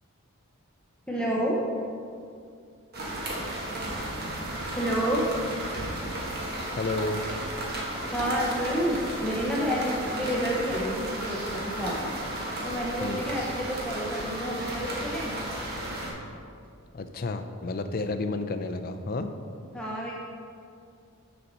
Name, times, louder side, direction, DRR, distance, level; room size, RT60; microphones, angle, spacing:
voice 1, 1.1-1.6 4.7-5.3 8.1-12.0 12.6-15.3 19.7-20.1, equal, 5° left, -5 dB, 0.7 m, -29 dB
sound 1, 2.9-16.1, right 1 dB, 45° right, 1.3 m, -34 dB
voice 2, 6.8-7.2 13.0-13.3 16.9-19.3, left 3 dB, 45° left, 8 dB, 0.4 m, -31 dB
6.8 x 4.3 x 6.6 m, 2.4 s
head